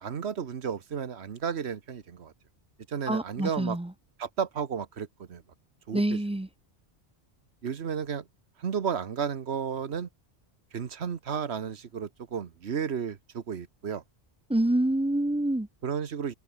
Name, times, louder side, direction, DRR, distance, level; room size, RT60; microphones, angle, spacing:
voice 1, 0.0-2.3 2.9-3.8 4.2-5.4 5.9-6.2 7.6-8.3 8.6-10.1 10.7-14.0 15.8-16.3, right 7 dB, 80° right, 1.4 m, -33 dB
voice 2, 3.1-3.9 5.9-6.5 14.5-15.7, right 1 dB, 10° right, 0.3 m, -26 dB
omnidirectional pair, 1.1 m